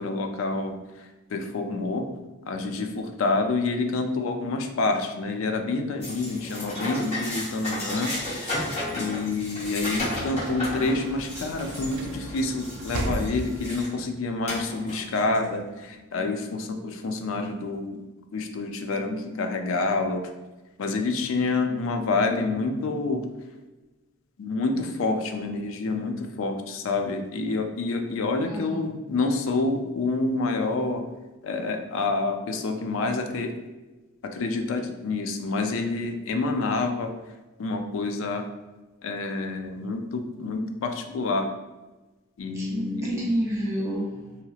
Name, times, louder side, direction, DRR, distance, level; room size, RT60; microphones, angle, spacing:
voice 1, 0.0-2.1 2.5-18.1 18.3-20.3 20.8-23.3 24.4-31.1 31.4-33.6 34.2-37.1 37.6-38.5 39.0-41.5 42.4-43.2, left 3 dB, 70° left, 5 dB, 0.4 m, -28 dB
sound 1, 6.0-14.0 14.5-15.4, left 1 dB, 30° left, 1.0 m, -33 dB
Sliding door / Slam, 9.3-14.0, right 1 dB, 75° right, 0.4 m, -36 dB
voice 2, 28.4-28.8 42.5-44.4, right 1 dB, 15° right, -6 dB, 0.5 m, -29 dB
2.8 x 2.8 x 2.3 m, 1.2 s
head